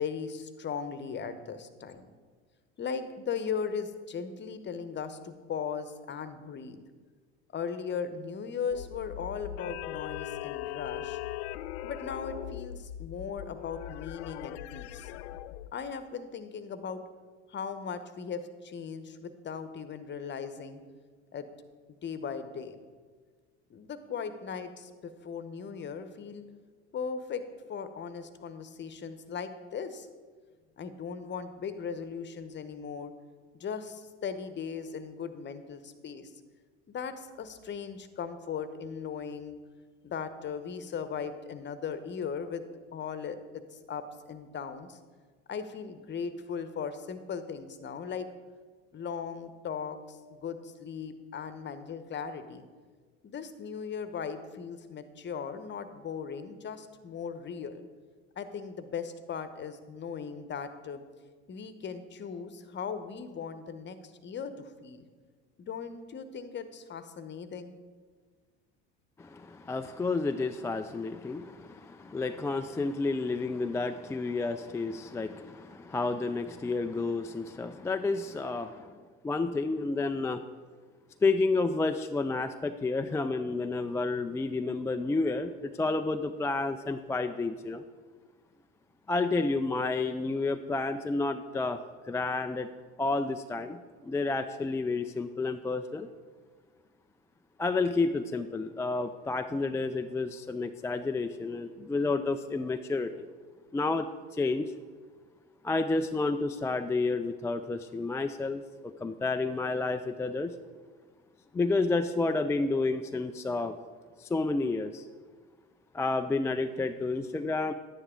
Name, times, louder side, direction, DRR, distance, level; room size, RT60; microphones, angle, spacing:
voice 1, 0.0-2.1 2.8-6.8 7.5-11.2 11.8-15.1 15.7-17.0 17.5-20.8 21.3-21.5 22.0-22.8 23.7-26.4 26.9-27.4 27.7-30.1 30.8-33.1 33.6-36.3 36.9-39.6 40.0-45.0 45.5-48.3 48.9-52.6 53.2-57.8 58.4-61.0 61.5-65.0 65.6-67.7, left 6 dB, 30° left, 11 dB, 1.0 m, -38 dB
sound 1, 8.7-15.7, left 13 dB, 70° left, 0.5 m, -40 dB
voice 2, 69.2-78.9 79.2-80.4 81.2-87.8 89.1-91.8 92.1-92.7 93.0-96.1 97.6-103.3 103.7-104.7 105.6-110.5 111.5-113.8 114.2-115.0 115.9-117.7, left 3 dB, 10° left, 7 dB, 0.3 m, -30 dB
10.5 x 9.6 x 3.8 m, 1.5 s
hypercardioid pair, 75°, 34 cm